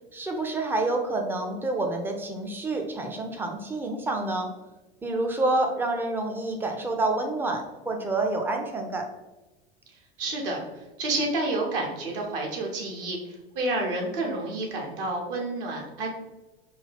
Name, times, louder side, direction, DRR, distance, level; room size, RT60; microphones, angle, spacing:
voice 1, 0.1-4.5 5.0-9.1, right 2 dB, 5° right, 3 dB, 0.4 m, -28 dB
voice 2, 10.2-16.1, right 2 dB, 60° right, 0 dB, 1.0 m, -30 dB
3.7 x 2.3 x 3.4 m, 1.1 s
figure-of-eight pair, 80°, 31 cm